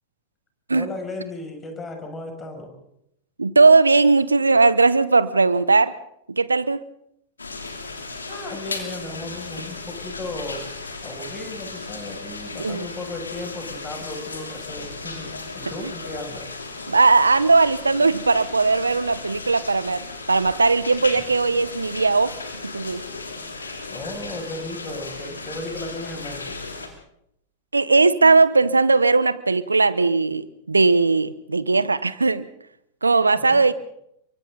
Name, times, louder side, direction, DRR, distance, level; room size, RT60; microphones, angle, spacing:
voice 1, 0.7-2.7 8.3-10.7 11.0-16.5 23.9-26.6 33.3-33.7, left 2 dB, 20° left, 3 dB, 6.8 m, -35 dB
voice 2, 3.4-5.9 6.3-6.8 12.6-12.9 15.8-15.9 16.9-20.0 20.3-22.3 22.6-23.0 27.7-32.5 33.0-33.7, right 3 dB, 85° right, 17 dB, 0.9 m, -18 dB
sound 1, 7.4-26.9, left 3 dB, 85° left, 3.2 m, -35 dB
29.5 x 24.0 x 4.0 m, 0.76 s
figure-of-eight pair, 95°, 0 cm